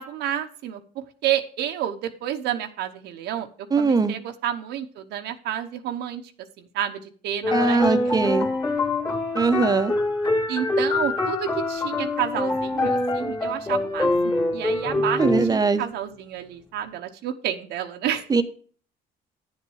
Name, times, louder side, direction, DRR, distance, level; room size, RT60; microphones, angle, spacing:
voice 1, 0.0-3.5 3.8-6.2 6.6-8.2 10.5-18.3, right 10 dB, 80° right, 6 dB, 1.0 m, -30 dB
voice 2, 3.7-4.1 7.5-8.5 9.3-9.9 15.2-15.8 18.3-18.4, right 4 dB, 20° right, 10 dB, 0.9 m, -21 dB
sound 1, 7.4-15.5, left 2 dB, 25° left, 2.4 m, -24 dB
10.0 x 7.3 x 4.8 m, 0.43 s
cardioid pair, 110°, 17 cm